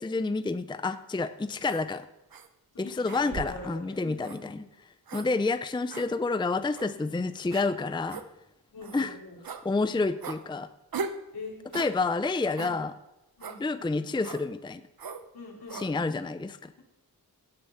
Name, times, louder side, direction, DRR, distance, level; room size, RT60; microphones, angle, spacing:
voice 1, 0.0-2.1 2.8-4.6 5.1-8.2 8.9-9.1 9.6-10.7 11.7-12.9 13.6-14.8 15.7-16.7, left 3 dB, 10° left, 12 dB, 0.5 m, -29 dB
sound 1, 1.7-1.8 2.3-2.5 3.1-3.6 4.2-4.4 5.1-5.3 5.9-6.1 6.7-6.9 7.5-7.7 8.1-8.3 8.8-9.0 9.4-9.6 10.2-10.4 10.9-11.2 11.7-11.9 12.6-12.8 13.4-13.6 14.2-14.5 15.0-15.2 15.7-15.9, right 5 dB, 65° right, 1.0 m, -38 dB
voice 2, 2.8-4.7 6.9-7.1 8.7-9.4 11.3-11.6 11.9-12.0 12.6-12.8 13.4-13.7 15.3-16.1, left 3 dB, 75° left, -2 dB, 4.0 m, -44 dB
17.0 x 6.9 x 5.7 m, 0.93 s
wide cardioid pair, 85°, 38 cm